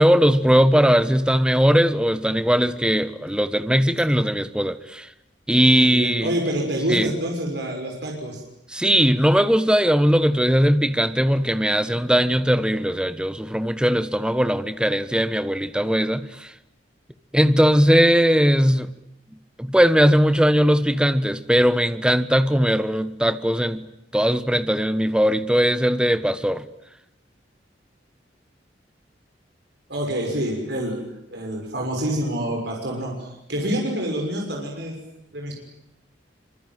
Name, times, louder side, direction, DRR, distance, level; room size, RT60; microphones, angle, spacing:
voice 1, 0.0-5.1 5.5-6.3 6.9-7.1 8.7-16.5 17.3-18.9 19.6-23.8 24.1-26.6, equal, 5° right, 1.3 m, -19 dB
voice 2, 5.8-8.4 29.9-31.0 31.3-34.9 35.3-35.5, right 1 dB, 65° right, 6.5 m, -27 dB
25.5 x 24.5 x 9.3 m
head